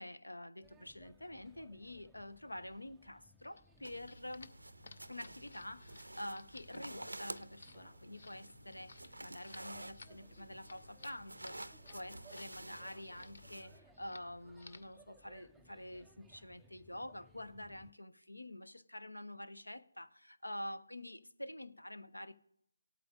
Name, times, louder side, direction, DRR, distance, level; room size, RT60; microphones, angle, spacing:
voice 1, 0.0-4.5 5.1-22.3, left 1 dB, 85° left, 0.9 m, -48 dB
Male speech man speaking / Child speech kid speaking / Chatter, 0.6-17.9, right 1 dB, 5° right, 0.4 m, -65 dB
sound 1, 3.4-12.6 12.8-13.6 13.9-14.3 14.6-15.0, left 3 dB, 55° left, 0.7 m, -57 dB
sound 2, 3.8-13.8, right 1 dB, 85° right, 0.5 m, -51 dB
18.5 x 8.5 x 2.4 m
figure-of-eight pair, 155°, 0 cm